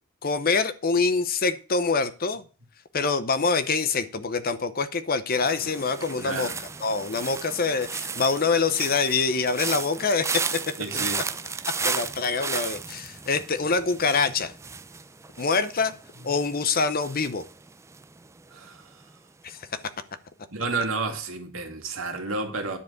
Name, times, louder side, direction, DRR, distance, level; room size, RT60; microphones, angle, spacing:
voice 1, 0.2-2.4 2.9-6.5 6.8-11.2 11.8-14.5 15.4-15.9 16.2-17.4 19.4-19.6, left 4 dB, 45° left, 0.8 m, -25 dB
sound 1, 5.4-18.4 18.7-19.1, right 5 dB, 15° right, 0.4 m, -34 dB
voice 2, 6.2-6.6 10.8-11.3 18.5-19.0 20.5-22.8, right 3 dB, 70° right, 2.2 m, -31 dB
10.5 x 4.8 x 8.0 m
head